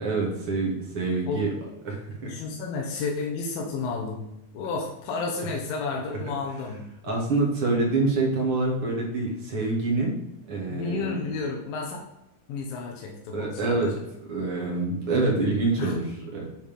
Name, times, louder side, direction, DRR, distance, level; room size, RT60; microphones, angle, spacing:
voice 1, 0.0-1.5 1.8-2.3 7.0-10.2 10.5-11.2 13.3-13.9 14.3-16.5, right 3 dB, 45° right, -2 dB, 2.3 m, -26 dB
voice 2, 2.2-4.2 4.5-6.8 10.7-12.0 12.5-13.9 15.8-15.9, left 4 dB, 90° left, 0 dB, 2.8 m, -31 dB
9.1 x 4.2 x 5.2 m, 0.89 s
omnidirectional pair, 3.9 m